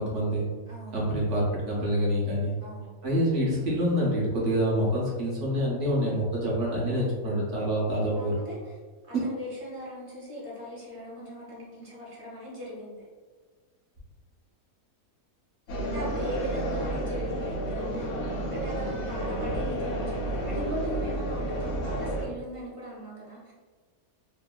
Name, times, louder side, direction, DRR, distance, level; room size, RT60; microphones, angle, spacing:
voice 1, 0.0-0.5 0.9-2.5 3.0-8.3 9.1-9.2, equal, 60° right, -5 dB, 1.0 m, -26 dB
voice 2, 0.7-1.7 2.6-3.0 3.5-3.7 8.1-8.8 9.1-13.0 15.8-23.5, equal, 30° right, -6 dB, 0.7 m, -40 dB
sound 1, 15.7-22.3, right 1 dB, 65° left, 0.8 m, -31 dB
2.9 x 2.5 x 2.2 m, 1.4 s
omnidirectional pair, 1.6 m